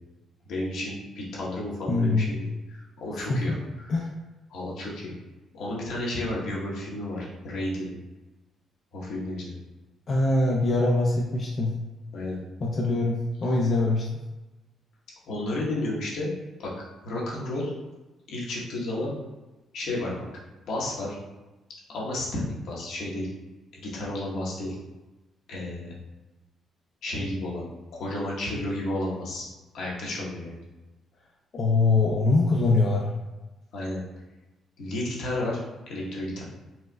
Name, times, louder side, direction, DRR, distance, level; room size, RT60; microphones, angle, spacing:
voice 1, 0.4-3.5 3.8-3.9 4.5-5.1 5.5-7.9 8.9-9.5 12.1-12.4 15.2-16.3 16.6-16.7 17.0-17.7 18.3-19.1 19.7-20.1 20.6-21.2 21.9-23.3 23.7-24.8 25.5-25.9 27.0-27.6 27.9-29.5 29.7-30.6 33.7-34.0 34.8-35.6 35.9-36.4, left 1 dB, 80° left, -5 dB, 1.0 m, -32 dB
voice 2, 1.9-2.3 3.1-3.6 3.9-4.1 10.1-11.7 12.6-14.1 31.5-33.1, left 2 dB, 50° left, -3 dB, 0.5 m, -23 dB
4.2 x 2.2 x 2.2 m, 1.1 s
cardioid pair, 80°, 0 cm